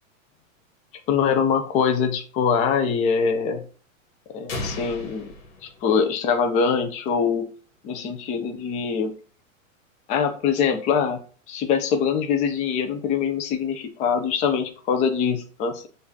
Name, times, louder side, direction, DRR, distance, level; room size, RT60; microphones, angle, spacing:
voice 1, 1.1-3.6 4.3-5.3 5.6-7.5 7.8-9.1 10.1-11.2 11.5-15.9, left 6 dB, 20° left, 6 dB, 0.4 m, -23 dB
sound 1, 4.5-6.4, left 2 dB, 90° left, 1.2 m, -35 dB
6.7 x 2.6 x 2.6 m, 0.40 s
hypercardioid pair, 130°, 40 cm